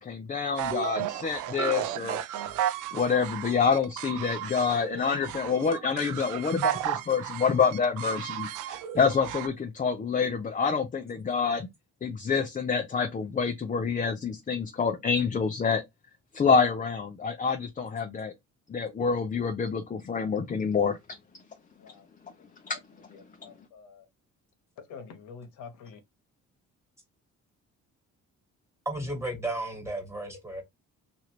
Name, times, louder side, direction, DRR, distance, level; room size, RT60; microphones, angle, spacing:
voice 1, 0.0-2.2 2.9-8.5 8.9-11.7 12.0-15.8 16.3-18.3 18.7-21.0 22.6-22.8, left 5 dB, 25° left, 0.5 m, -27 dB
sound 1, 0.6-9.5, right 11 dB, 85° right, 0.5 m, -34 dB
voice 2, 22.4-22.8 23.1-24.0 24.9-26.0, left 5 dB, 85° left, 0.9 m, -47 dB
voice 3, 28.8-30.6, right 1 dB, 10° right, 1.5 m, -33 dB
3.0 x 2.5 x 2.9 m
cardioid pair, 90°, 30 cm